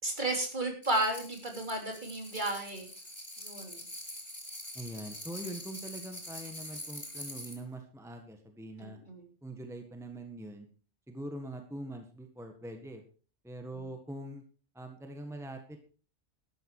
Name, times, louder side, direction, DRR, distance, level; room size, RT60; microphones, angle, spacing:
voice 1, 0.0-2.9 3.4-3.8 8.8-9.3, right 2 dB, 40° right, 2 dB, 3.6 m, -33 dB
sound 1, 0.8-7.6, left 1 dB, 25° left, 4.7 m, -45 dB
voice 2, 4.7-9.0 9.4-10.7 11.1-13.0 13.4-14.4 14.7-15.8, right 1 dB, ahead, 5 dB, 1.6 m, -43 dB
13.0 x 11.0 x 4.8 m, 0.38 s
omnidirectional pair, 1.2 m